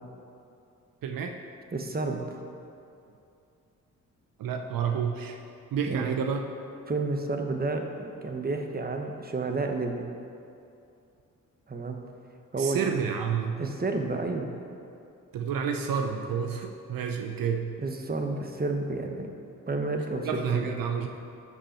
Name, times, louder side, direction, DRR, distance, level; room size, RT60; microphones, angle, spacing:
voice 1, 1.0-1.4 4.4-5.4 5.7-6.4 12.6-13.6 15.3-17.7 20.2-21.1, right 7 dB, 70° right, 4 dB, 0.7 m, -29 dB
voice 2, 1.7-2.4 5.9-6.1 6.9-10.1 11.7-12.0 12.5-12.8 13.6-14.5 17.8-19.3 19.7-20.6, right 3 dB, 25° right, 4 dB, 1.2 m, -30 dB
13.0 x 5.6 x 4.4 m, 2.6 s
supercardioid pair, 60°, 35 cm